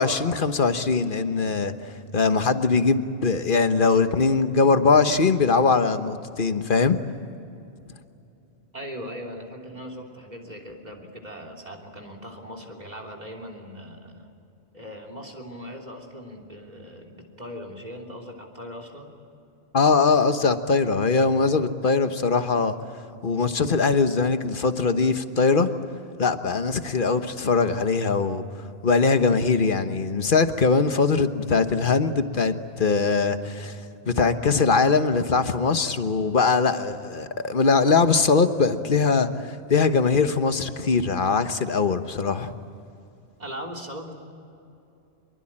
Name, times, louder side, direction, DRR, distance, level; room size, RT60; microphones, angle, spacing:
voice 1, 0.0-1.7 2.1-7.0 19.7-22.8 23.2-25.7 26.2-28.4 28.8-33.8 34.1-42.5, left 4 dB, 50° left, 9 dB, 1.3 m, -21 dB
voice 2, 8.7-14.3 14.7-19.1 43.4-44.1, equal, 40° right, 4 dB, 3.3 m, -39 dB
25.5 x 23.5 x 8.8 m, 2.7 s
omnidirectional pair, 1.2 m